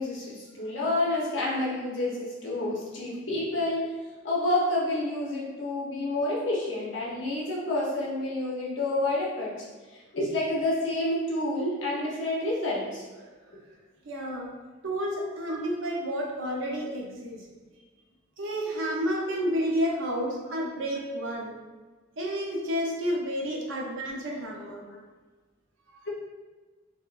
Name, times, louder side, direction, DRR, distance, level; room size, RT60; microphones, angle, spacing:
voice 1, 0.0-3.9 4.2-9.7 10.1-13.0 15.5-15.6, left 2 dB, 75° left, -5 dB, 0.9 m, -29 dB
voice 2, 14.0-14.5 14.8-17.5 18.4-21.5 22.2-24.8 25.9-26.0, equal, 85° right, -1 dB, 0.6 m, -30 dB
3.5 x 2.2 x 2.4 m, 1.3 s
head